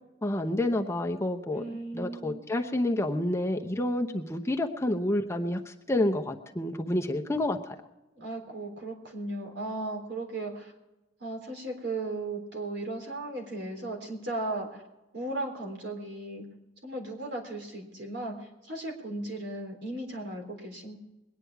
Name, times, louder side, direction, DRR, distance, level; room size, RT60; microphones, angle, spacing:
voice 1, 0.2-1.6 1.9-7.7, left 1 dB, 15° left, 3 dB, 0.9 m, -29 dB
voice 2, 1.5-2.5 8.1-10.7 11.2-14.8 15.1-16.4 16.8-21.0, right 2 dB, 70° right, 1 dB, 3.7 m, -36 dB
22.0 x 9.7 x 4.7 m, 1.0 s
head